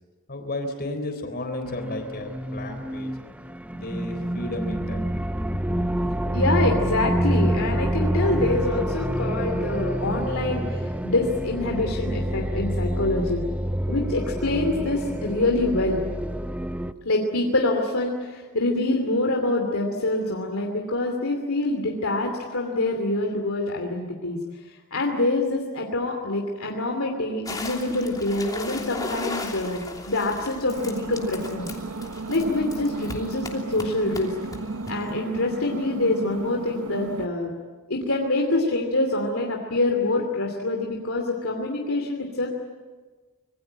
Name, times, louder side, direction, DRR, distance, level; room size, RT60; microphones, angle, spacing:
voice 1, 0.3-3.1 3.7-5.0, left 2 dB, 45° left, 6 dB, 3.8 m, -33 dB
sound 1, 1.6-16.9, right 1 dB, 5° right, 0.7 m, -27 dB
voice 2, 6.3-13.4 13.9-16.0 17.0-24.4 24.7-31.7 32.3-34.3 34.9-37.5 37.9-42.5, left 2 dB, 75° left, 1 dB, 2.8 m, -25 dB
sound 2, 27.5-35.1, left 2 dB, 20° left, 3.0 m, -37 dB
sound 3, 30.7-37.3, right 3 dB, 80° right, 0.9 m, -34 dB
26.0 x 22.0 x 8.9 m, 1.4 s
head